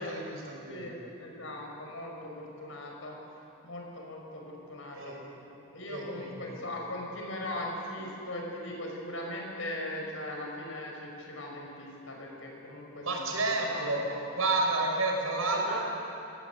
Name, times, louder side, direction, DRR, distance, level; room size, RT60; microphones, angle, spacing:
voice 1, 0.0-0.9 4.9-5.2 5.9-6.3 13.0-14.0 14.3-15.8, right 2 dB, 85° right, 0 dB, 5.5 m, -30 dB
voice 2, 0.7-3.2 3.6-14.4 15.2-15.8, left 1 dB, 65° left, 0 dB, 5.8 m, -40 dB
27.0 x 17.0 x 8.3 m, 2.9 s
head